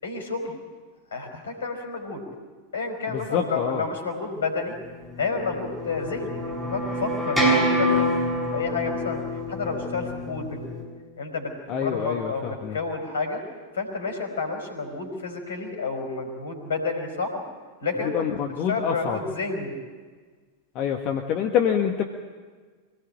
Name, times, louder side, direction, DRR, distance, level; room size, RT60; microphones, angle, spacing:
voice 1, 0.0-0.6 1.1-2.2 2.7-4.7 5.2-7.9 8.3-9.2 9.5-10.7 11.2-13.4 13.7-17.4 17.8-19.7, left 4 dB, 65° left, 5 dB, 4.8 m, -30 dB
voice 2, 3.1-3.8 11.7-12.8 18.0-19.2 20.7-22.0, left 8 dB, 40° left, 3 dB, 1.6 m, -26 dB
sound 1, 5.1-10.8, equal, 10° right, 6.7 m, -26 dB
24.5 x 18.0 x 8.8 m, 1.5 s
figure-of-eight pair, 90°, 0 cm